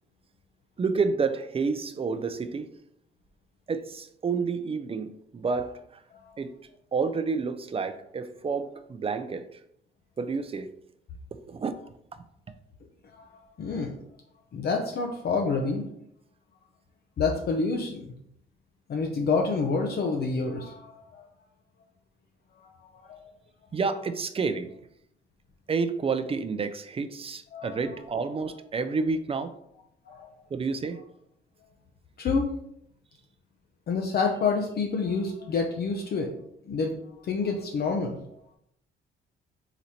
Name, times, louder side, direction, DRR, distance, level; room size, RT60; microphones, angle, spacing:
voice 1, 0.8-2.7 3.7-6.0 6.4-6.5 6.9-9.6 10.2-10.7 11.5-11.7 23.7-24.7 25.7-29.5 30.5-31.0, right 4 dB, 30° right, 10 dB, 0.4 m, -29 dB
voice 2, 13.2-14.0 14.5-15.9 17.2-18.1 18.9-21.3 22.6-23.3 27.5-28.0 30.1-30.3 32.2-32.5 33.9-36.4 36.7-37.0 37.2-38.3, left 4 dB, 55° left, 2 dB, 0.6 m, -28 dB
3.9 x 3.0 x 4.2 m, 0.73 s
cardioid pair, 90°, 20 cm